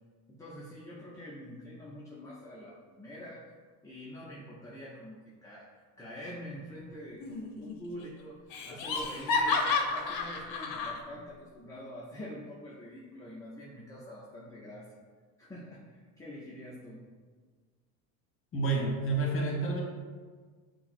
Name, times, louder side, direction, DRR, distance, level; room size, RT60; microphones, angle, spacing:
voice 1, 0.3-3.5 3.8-8.4 8.7-14.9 15.4-17.1, equal, 10° left, -6 dB, 0.3 m, -45 dB
Laughter, 7.2-7.7 8.0-8.1 8.5-11.0, left 4 dB, 50° left, 0.6 m, -31 dB
voice 2, 18.5-19.8, right 3 dB, 30° left, -1 dB, 1.0 m, -29 dB
5.5 x 2.0 x 2.5 m, 1.5 s
supercardioid pair, 95°, 45 cm